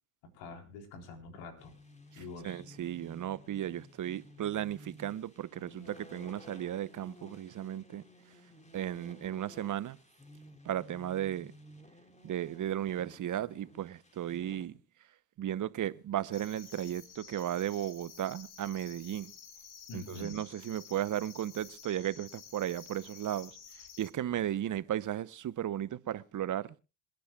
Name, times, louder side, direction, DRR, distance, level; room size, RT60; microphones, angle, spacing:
voice 1, 0.3-1.7 2.2-2.6 19.9-20.4, left 3 dB, 70° left, 3.9 m, -45 dB
sound 1, 1.6-14.7, left 1 dB, 15° left, 2.3 m, -55 dB
voice 2, 2.1-8.0 8.7-10.0 10.6-11.5 12.2-14.7 15.4-19.3 19.9-23.6 24.0-26.8, right 11 dB, 40° right, 0.9 m, -35 dB
sound 2, 16.3-24.1, left 6 dB, 55° left, 3.4 m, -52 dB
27.0 x 10.5 x 2.3 m
hypercardioid pair, 65°, 46 cm